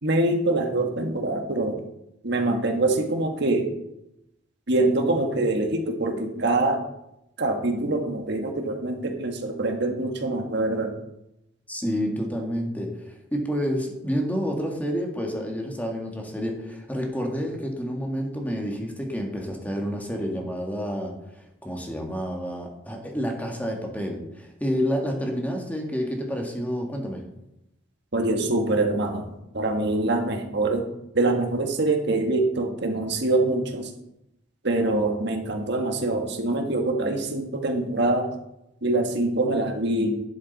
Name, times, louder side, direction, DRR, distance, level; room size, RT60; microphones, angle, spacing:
voice 1, 0.0-1.8 2.2-3.7 4.7-6.8 7.4-10.9 28.1-30.9 31.1-33.9 34.6-38.3 38.8-40.2, right 2 dB, 60° right, 4 dB, 1.6 m, -24 dB
voice 2, 11.7-21.1 21.6-27.2, equal, 10° left, 1 dB, 1.8 m, -29 dB
11.0 x 7.6 x 4.1 m, 0.85 s
head